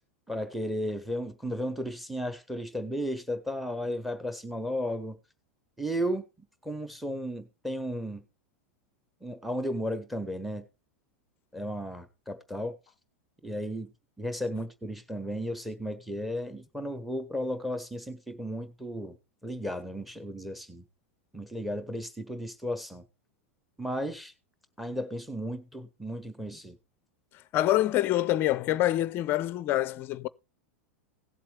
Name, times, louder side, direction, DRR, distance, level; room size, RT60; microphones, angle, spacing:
voice 1, 0.3-5.2 5.8-6.2 6.6-8.2 9.2-10.6 11.5-12.7 13.4-13.9 14.2-19.2 19.4-20.8 21.3-23.0 23.8-24.3 24.8-26.8, equal, ahead, 1.2 m, -34 dB
voice 2, 27.5-30.3, left 14 dB, 35° left, 0.5 m, -26 dB
17.0 x 7.5 x 3.3 m
figure-of-eight pair, 90°, 7 cm